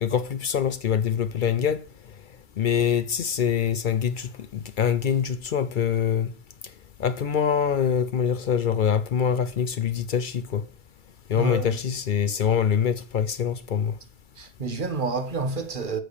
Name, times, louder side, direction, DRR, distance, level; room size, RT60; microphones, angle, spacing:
voice 1, 0.0-1.8 2.6-6.3 7.0-10.6 11.3-14.0, left 8 dB, 60° left, 0.7 m, -24 dB
voice 2, 11.4-11.8 14.4-16.0, right 3 dB, 55° right, 1.2 m, -29 dB
7.8 x 4.9 x 6.6 m
omnidirectional pair, 1.0 m